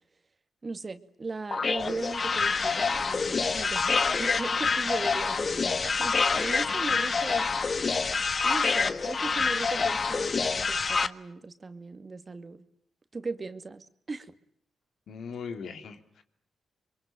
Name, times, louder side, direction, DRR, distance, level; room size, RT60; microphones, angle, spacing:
voice 1, 0.6-7.5 8.4-12.6 13.1-14.3, right 3 dB, 40° right, 10 dB, 2.1 m, -38 dB
sound 1, 1.5-11.1, left 4 dB, 45° left, 1.3 m, -27 dB
voice 2, 6.6-7.0 15.1-16.2, left 6 dB, 75° left, 7 dB, 3.0 m, -40 dB
26.0 x 23.0 x 9.1 m, 0.67 s
cardioid pair, 60°, 0 cm